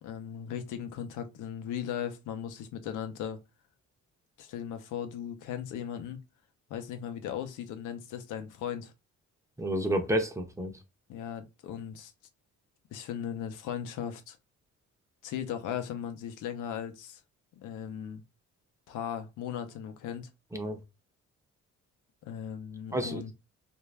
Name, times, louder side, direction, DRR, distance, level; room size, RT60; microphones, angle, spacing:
voice 1, 0.0-3.4 4.4-6.2 6.7-8.9 11.1-12.1 12.9-14.4 15.2-17.2 17.5-18.2 18.9-20.3 22.3-23.3, left 9 dB, 85° left, 0.7 m, -37 dB
voice 2, 9.6-10.7 20.5-20.8 22.9-23.3, right 1 dB, 10° right, 0.6 m, -30 dB
2.5 x 2.2 x 3.2 m
cardioid pair, 90°, 30 cm